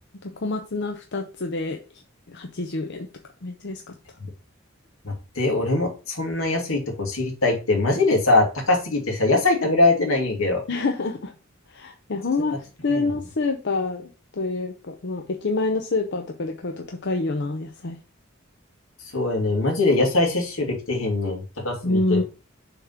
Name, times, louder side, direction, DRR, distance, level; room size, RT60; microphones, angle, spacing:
voice 1, 0.2-1.8 2.3-3.1 3.4-4.0 10.7-11.3 11.7-18.0 21.8-22.2, left 3 dB, 60° left, 4 dB, 0.8 m, -27 dB
voice 2, 5.0-10.6 12.9-13.1 19.1-22.2, left 2 dB, 85° left, 1 dB, 2.5 m, -22 dB
6.9 x 3.7 x 5.9 m, 0.33 s
head